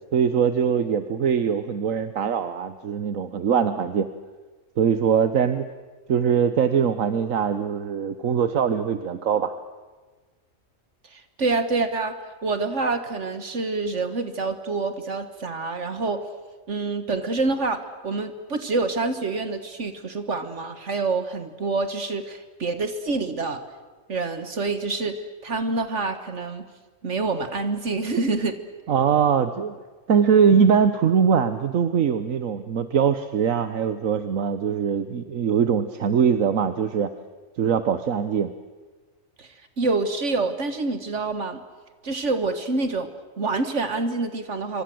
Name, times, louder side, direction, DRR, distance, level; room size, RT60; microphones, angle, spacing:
voice 1, 0.1-4.1 4.8-5.6 6.1-9.5 28.9-29.7 30.1-37.1 37.6-38.5, right 7 dB, 80° right, 11 dB, 1.4 m, -22 dB
voice 2, 11.1-12.2 12.4-16.2 16.7-23.6 24.1-25.2 25.4-26.6 27.0-28.6 39.4-39.5 39.8-41.6 42.0-43.1 43.4-44.8, right 3 dB, 65° right, 10 dB, 1.8 m, -26 dB
27.0 x 25.0 x 7.8 m, 1.3 s
omnidirectional pair, 1.4 m